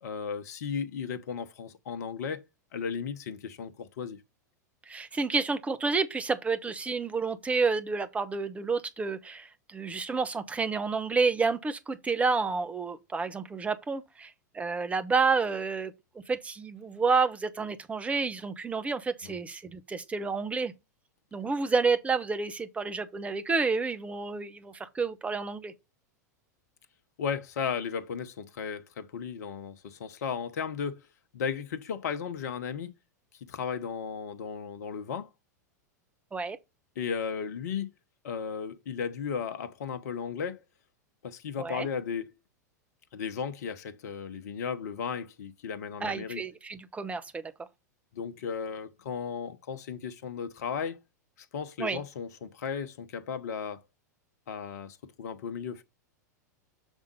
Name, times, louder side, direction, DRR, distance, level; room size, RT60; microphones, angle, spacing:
voice 1, 0.0-2.4 2.7-4.2 19.2-19.4 27.2-31.0 31.3-33.0 33.4-35.3 37.0-37.9 38.2-40.6 41.2-42.3 43.1-46.4 48.1-51.0 51.4-53.8 54.5-55.8, left 6 dB, 65° left, 0.9 m, -35 dB
voice 2, 4.9-15.9 16.3-20.7 21.3-25.7 36.3-36.6 41.6-41.9 46.0-47.7 51.8-52.0, right 4 dB, 15° right, 1.0 m, -30 dB
7.3 x 3.6 x 5.3 m
figure-of-eight pair, 95°, 10 cm